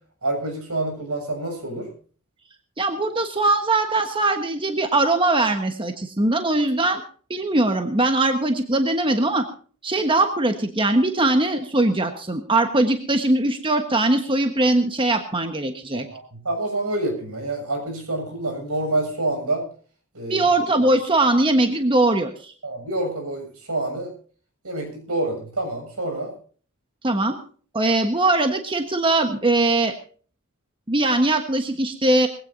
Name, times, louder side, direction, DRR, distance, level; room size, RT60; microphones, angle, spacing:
voice 1, 0.2-1.9 15.9-19.7 20.1-20.4 22.6-24.1 24.6-26.3, right 2 dB, 80° right, 4 dB, 7.2 m, -27 dB
voice 2, 2.8-7.0 7.3-9.5 9.8-16.1 20.3-22.5 27.0-27.4 27.7-29.9 30.9-32.3, right 2 dB, 25° right, 6 dB, 1.3 m, -21 dB
22.0 x 16.5 x 2.7 m, 0.43 s
head